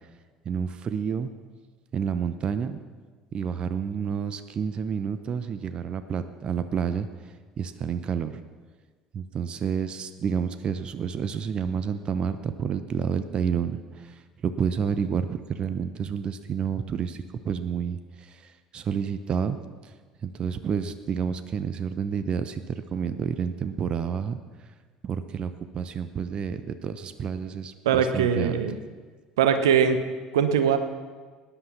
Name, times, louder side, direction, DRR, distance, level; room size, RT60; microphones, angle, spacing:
voice 1, 0.5-1.3 1.9-2.8 3.3-7.1 7.6-8.3 9.1-13.8 14.4-17.2 17.4-18.0 18.7-19.6 20.2-24.4 25.0-28.6, right 7 dB, 40° right, 11 dB, 0.8 m, -29 dB
voice 2, 27.8-28.7 29.4-30.0 30.3-30.8, right 7 dB, 70° right, 9 dB, 1.0 m, -21 dB
19.0 x 10.5 x 5.8 m, 1.5 s
figure-of-eight pair, 60°, 2 cm